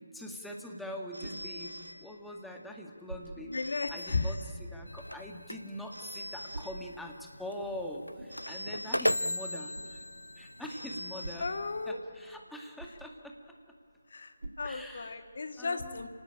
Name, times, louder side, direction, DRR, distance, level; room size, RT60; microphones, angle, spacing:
voice 1, 0.1-4.4 4.7-10.0 10.4-11.5 11.9-13.3 14.6-15.2 15.6-16.1, left 1 dB, ahead, 0 dB, 1.9 m, -43 dB
sound 1, 0.5-15.4, right 2 dB, 65° right, 2.7 m, -51 dB
Telephone, 1.1-2.6 3.5-5.0 5.9-7.4 8.3-9.8 10.7-12.2, equal, 80° right, 2.7 m, -46 dB
voice 2, 3.5-4.4 8.4-8.6 11.4-12.0 14.1-16.1, left 3 dB, 50° left, 7 dB, 1.9 m, -35 dB
sound 2, 4.9-11.9, left 1 dB, 85° left, 0.7 m, -37 dB
30.0 x 17.5 x 9.0 m, 2.8 s
figure-of-eight pair, 155°, 0 cm